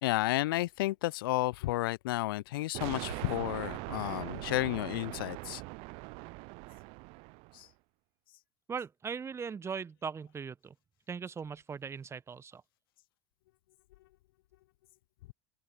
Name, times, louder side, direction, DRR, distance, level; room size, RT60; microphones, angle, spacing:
voice 1, 0.0-5.6 7.5-7.7, left 18 dB, 65° left, 0.5 m, -32 dB
sound 1, 2.7-7.6, right 28 dB, 50° right, 0.6 m, -41 dB
voice 2, 8.7-10.7 11.1-12.6, right 6 dB, 20° right, 0.9 m, -39 dB
open air
figure-of-eight pair, 80°, 13 cm